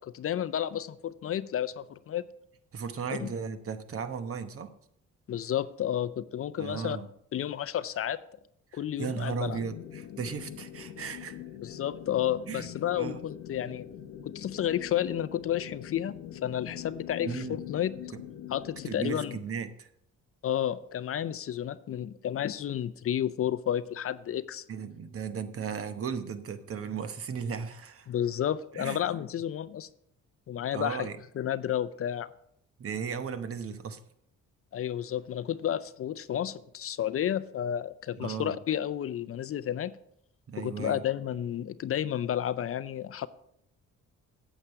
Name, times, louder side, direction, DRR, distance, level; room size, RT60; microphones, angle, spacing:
voice 1, 0.0-2.2 3.2-3.3 5.3-7.0 7.3-8.2 8.7-9.6 11.6-13.8 14.3-17.9 18.5-19.4 20.4-24.6 28.1-29.9 30.5-31.1 31.4-32.3 34.7-39.9 40.6-43.3, left 10 dB, 50° left, 15 dB, 0.5 m, -31 dB
voice 2, 2.7-4.7 6.6-7.1 9.0-11.4 12.5-12.7 12.9-13.2 17.2-17.6 18.1-18.2 18.8-19.9 24.7-28.1 28.7-29.0 30.7-31.2 32.8-34.0 38.2-38.5 40.5-41.0, right 6 dB, 50° right, 10 dB, 1.0 m, -36 dB
sound 1, 9.4-19.1, left 10 dB, 90° left, 0.8 m, -43 dB
8.7 x 8.2 x 4.6 m, 0.70 s
cardioid pair, 90°, 30 cm